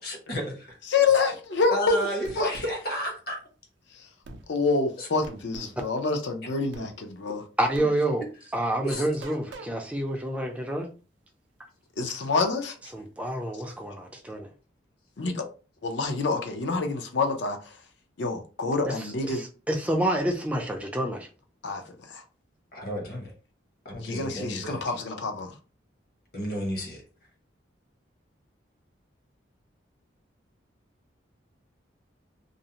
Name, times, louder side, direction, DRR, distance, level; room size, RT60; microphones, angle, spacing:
voice 1, 0.0-0.8 1.7-3.4 5.0-5.1 8.8-9.1 22.7-23.3 23.8-25.0 26.3-27.0, equal, 50° left, 0.9 m, -32 dB
voice 2, 0.9-2.1 2.4-2.5 3.9-4.1 4.5-7.4 12.0-12.8 15.2-15.5 15.8-17.8 18.2-19.4 21.6-22.2 24.0-25.6, left 4 dB, 70° left, 0.5 m, -27 dB
sound 1, 2.2-2.7 4.2-4.4 5.2-5.8 6.7-6.9 7.7-7.9 8.9-9.7, right 3 dB, 75° right, 0.4 m, -41 dB
voice 3, 7.6-8.2 8.5-10.9 12.9-14.5 19.3-21.3, right 1 dB, 5° right, 0.4 m, -28 dB
2.5 x 2.0 x 2.8 m
head